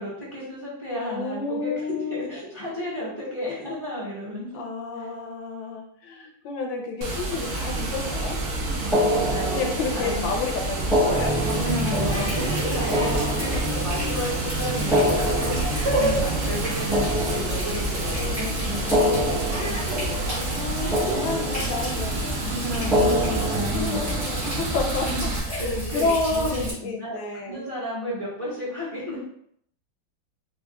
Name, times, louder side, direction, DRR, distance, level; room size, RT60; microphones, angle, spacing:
voice 1, 0.0-4.6 4.9-5.1 8.8-10.3 11.4-19.7 22.4-24.4 25.0-29.2, left 1 dB, 20° right, -8 dB, 0.9 m, -33 dB
voice 2, 1.0-2.3 4.5-8.4 9.5-11.4 13.1-13.7 16.7-17.5 18.1-19.1 20.2-22.4 23.4-25.1 25.4-27.6, left 4 dB, 80° left, 2 dB, 1.4 m, -31 dB
Water, 7.0-25.4, right 2 dB, 75° right, 0.7 m, -29 dB
sound 1, 8.9-10.2 10.8-14.1 14.8-18.1 18.8-20.6 20.9-22.0 22.8-24.6, equal, ahead, 0.4 m, -27 dB
Water tap faucet, 11.1-26.7, right 2 dB, 50° right, 1.7 m, -30 dB
4.7 x 2.4 x 2.2 m, 0.67 s
omnidirectional pair, 2.1 m